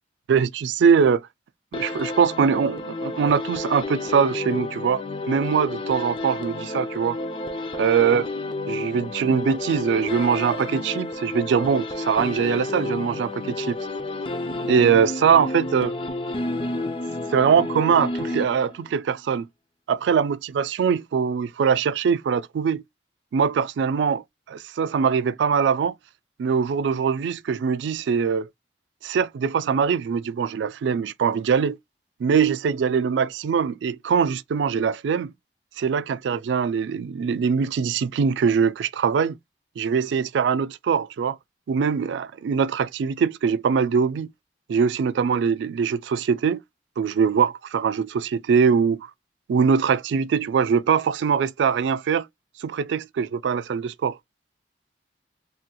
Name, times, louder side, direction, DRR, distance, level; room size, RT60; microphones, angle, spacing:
voice 1, 0.3-1.3 1.7-7.2 7.7-8.3 8.7-13.8 14.7-16.0 17.3-19.5 19.9-22.8 23.3-25.9 26.4-28.5 29.0-31.8 32.2-35.3 35.8-39.4 39.8-41.4 41.7-44.3 44.7-46.6 47.0-49.1 49.5-52.3 52.6-54.2, right 6 dB, 85° right, 0.3 m, -22 dB
sound 1, 1.7-18.9, left 2 dB, 30° left, 0.4 m, -31 dB
3.4 x 2.7 x 2.2 m
head